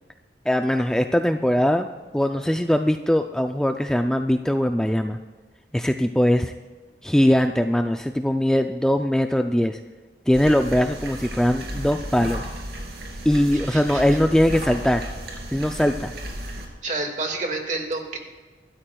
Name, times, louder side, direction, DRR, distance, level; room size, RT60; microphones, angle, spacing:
voice 1, 0.5-1.9 2.1-5.2 5.7-6.5 7.0-9.8 10.3-12.5 13.3-15.0 15.5-16.1, equal, 5° left, 6 dB, 0.3 m, -21 dB
sound 1, 10.3-16.7, right 1 dB, 65° right, 2.7 m, -34 dB
voice 2, 13.5-14.2 16.8-18.2, right 3 dB, 45° right, 3 dB, 1.9 m, -29 dB
24.0 x 13.0 x 2.3 m, 1.4 s
head